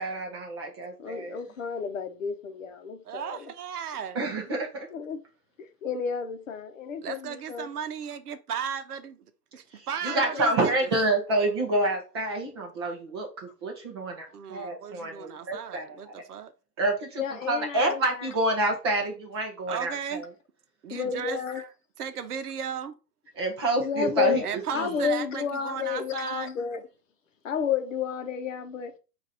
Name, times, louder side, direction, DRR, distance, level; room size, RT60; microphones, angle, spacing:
voice 1, 0.0-1.4 4.1-4.9 9.7-16.1 16.8-20.3 23.4-24.4 24.7-24.9, right 2 dB, 15° right, 0.5 m, -28 dB
voice 2, 1.0-3.5 4.9-5.2 5.6-7.7 10.1-10.5 17.2-18.3 20.9-21.6 23.8-26.8 27.4-28.9, left 7 dB, 50° left, 0.8 m, -31 dB
voice 3, 3.1-4.2 7.0-9.2 9.5-10.9 14.3-16.5 19.7-20.2 20.8-21.7 22.0-22.9 24.4-26.5, right 7 dB, 65° right, 0.8 m, -35 dB
4.8 x 2.6 x 4.1 m
hypercardioid pair, 140°, 49 cm